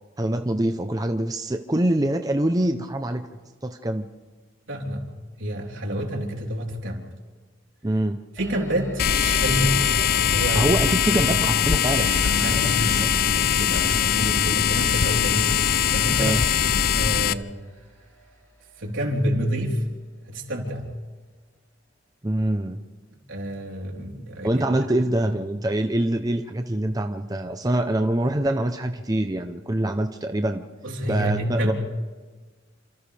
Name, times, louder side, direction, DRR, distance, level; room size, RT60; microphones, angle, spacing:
voice 1, 0.2-3.3 3.6-4.1 7.8-8.2 10.5-13.1 16.2-16.4 22.2-22.8 24.4-30.6 31.1-31.7, right 1 dB, 20° right, 6 dB, 0.7 m, -25 dB
voice 2, 4.7-5.1 5.4-7.1 8.3-9.8 10.1-10.7 11.1-11.5 12.0-15.6 15.9-16.4 16.7-17.6 18.8-19.8 20.3-20.9 23.3-24.6 25.2-25.3 30.8-31.7, equal, 75° right, -1 dB, 3.9 m, -28 dB
sound 1, 8.4-20.2, right 1 dB, 15° left, 3.5 m, -45 dB
sound 2, 9.0-17.3, left 8 dB, 50° left, 0.5 m, -21 dB
28.5 x 27.5 x 3.4 m, 1.4 s
head